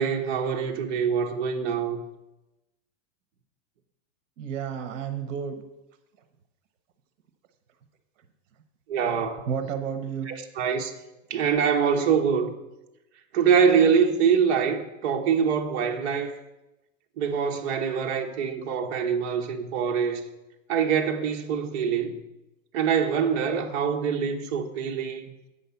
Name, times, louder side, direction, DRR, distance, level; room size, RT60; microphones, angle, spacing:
voice 1, 0.0-2.0 8.9-9.5 10.3-10.9 11.3-12.5 13.3-16.3 17.2-20.2 20.7-22.1 22.7-25.3, right 7 dB, 55° right, 1.2 m, -24 dB
voice 2, 4.4-5.6 9.5-10.3, right 7 dB, 85° right, 1.0 m, -31 dB
8.5 x 5.7 x 6.9 m
supercardioid pair, 170°, 37 cm